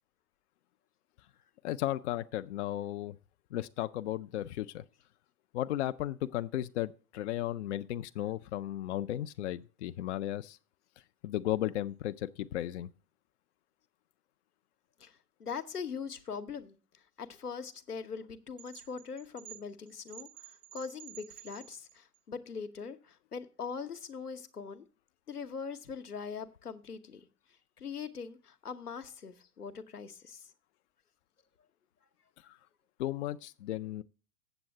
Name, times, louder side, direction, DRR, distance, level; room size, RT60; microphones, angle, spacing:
voice 1, 1.6-3.2 3.5-4.8 5.5-10.6 11.2-12.9 32.4-32.6 33.0-34.0, left 13 dB, 50° left, 0.5 m, -35 dB
voice 2, 15.0-16.7 17.2-24.8 25.3-27.3 27.8-30.5, left 6 dB, 85° left, 1.0 m, -42 dB
sound 1, 18.6-22.2, right 18 dB, 25° right, 0.5 m, -51 dB
7.9 x 7.6 x 7.2 m
figure-of-eight pair, 90°, 45 cm